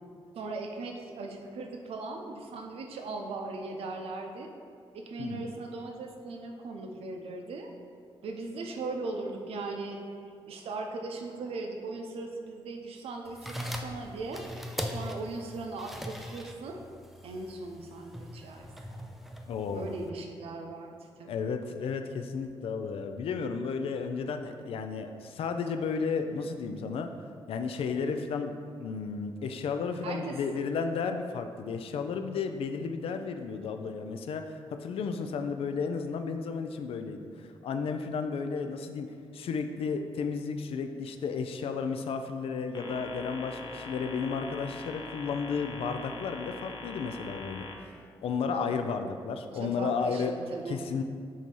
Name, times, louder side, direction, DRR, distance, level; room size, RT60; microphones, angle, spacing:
voice 1, 0.4-4.5 4.9-7.7 8.2-10.0 10.5-14.4 14.9-16.8 17.2-18.7 19.7-21.3 30.0-30.3 49.5-50.8, right 3 dB, 85° right, 3 dB, 0.7 m, -38 dB
sound 1, 13.3-20.1, equal, ahead, 0.4 m, -40 dB
voice 2, 19.5-20.0 21.3-27.1 27.5-47.9 48.2-50.4 50.7-51.0, left 5 dB, 75° left, 7 dB, 0.4 m, -33 dB
sound 2, 42.7-47.7, left 3 dB, 50° left, 0.7 m, -43 dB
7.6 x 2.8 x 5.3 m, 2.2 s
wide cardioid pair, 150°, 10 cm